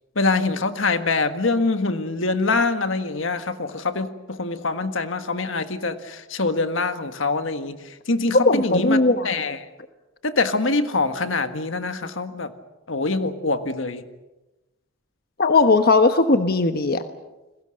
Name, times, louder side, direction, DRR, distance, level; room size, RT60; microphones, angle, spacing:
voice 1, 0.2-9.6 10.2-12.5 12.9-14.0, left 3 dB, 80° left, 8 dB, 1.7 m, -24 dB
voice 2, 8.3-9.3 15.4-17.0, left 3 dB, 50° left, 8 dB, 1.2 m, -18 dB
30.0 x 21.5 x 6.6 m, 1.0 s
head